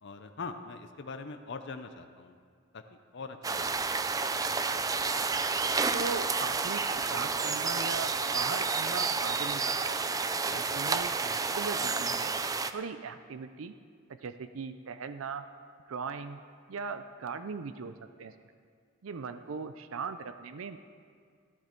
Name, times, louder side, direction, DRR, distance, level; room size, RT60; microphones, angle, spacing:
voice 1, 0.0-2.4 2.7-2.8 3.1-3.7 4.1-4.2 10.4-10.6, left 4 dB, 55° left, 8 dB, 0.6 m, -42 dB
sound 1, 3.4-12.7, right 4 dB, 15° right, 0.3 m, -30 dB
voice 2, 5.9-6.8 7.1-10.0 10.5-12.4 12.7-13.7 14.2-15.4 15.9-16.4 16.7-17.9 18.2-18.3 19.0-20.8, right 5 dB, 80° right, 10 dB, 0.5 m, -39 dB
16.0 x 10.0 x 4.5 m, 2.1 s
head